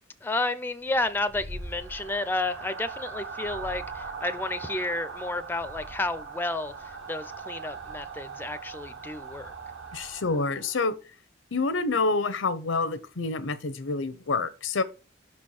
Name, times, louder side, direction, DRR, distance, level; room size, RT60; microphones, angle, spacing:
voice 1, 0.2-6.7 7.1-9.5, left 2 dB, 10° left, 0.4 m, -31 dB
sound 1, 0.9-10.9, right 4 dB, 65° right, 1.1 m, -40 dB
voice 2, 9.9-10.9 11.5-14.8, left 3 dB, 85° left, 0.7 m, -27 dB
6.0 x 4.3 x 4.7 m
head